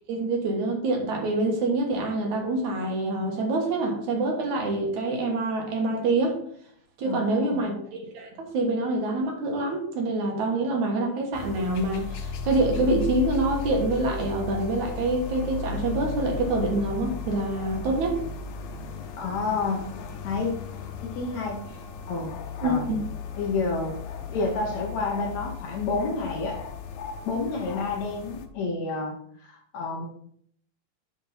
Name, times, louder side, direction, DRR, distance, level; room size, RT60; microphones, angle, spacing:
voice 1, 0.1-6.4 7.0-18.2 22.6-23.0, right 2 dB, 65° right, 1 dB, 2.6 m, -26 dB
voice 2, 7.1-7.8 19.2-19.9 20.2-20.5 21.0-22.4 22.6-22.9 23.3-24.0 24.3-26.6 27.2-29.2 29.4-30.1, left 3 dB, 65° left, 1 dB, 2.1 m, -29 dB
sound 1, 11.3-28.5, left 6 dB, 85° left, 2.6 m, -36 dB
9.4 x 4.8 x 4.2 m, 0.63 s
omnidirectional pair, 3.9 m